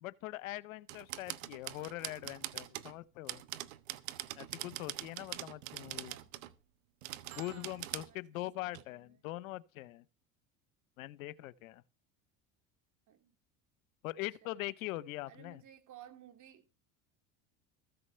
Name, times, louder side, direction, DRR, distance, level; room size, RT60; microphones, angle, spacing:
voice 1, 0.0-3.4 4.4-6.1 7.4-10.0 11.0-11.8 14.0-15.6, left 17 dB, 85° left, 0.9 m, -42 dB
sound 1, 0.9-2.9 3.3-6.5 7.0-8.1 8.7-8.8, right 16 dB, 80° right, 1.2 m, -43 dB
voice 2, 5.8-6.3 7.3-9.2 13.1-13.3 14.4-14.6 15.3-16.7, right 10 dB, 50° right, 3.0 m, -57 dB
14.5 x 6.8 x 6.8 m
supercardioid pair, 90°, 39 cm